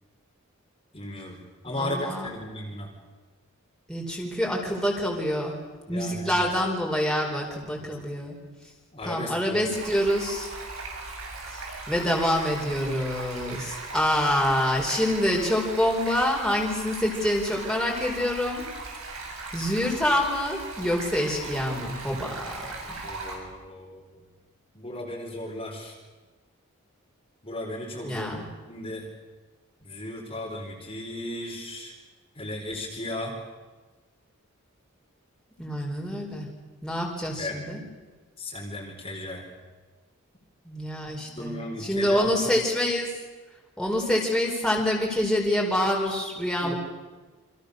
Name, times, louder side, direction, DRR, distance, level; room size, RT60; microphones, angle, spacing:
voice 1, 0.9-2.9 5.9-6.4 7.8-7.9 8.9-9.7 23.0-24.2 24.7-25.9 27.4-28.4 28.7-29.1 29.8-31.9 32.4-33.4 37.4-37.7 38.4-39.5 41.3-42.5 46.6-46.7, left 1 dB, 25° left, -1 dB, 4.5 m, -35 dB
voice 2, 1.7-2.3 3.9-5.6 5.9-8.4 9.0-10.5 11.5-18.7 19.5-23.0 28.0-28.5 35.6-36.5 36.8-37.8 40.6-43.1 43.8-46.7, left 1 dB, 5° left, -2 dB, 5.1 m, -26 dB
Stream, 9.7-23.3, right 3 dB, 65° right, 7.9 m, -38 dB
29.0 x 26.5 x 6.8 m, 1.3 s
head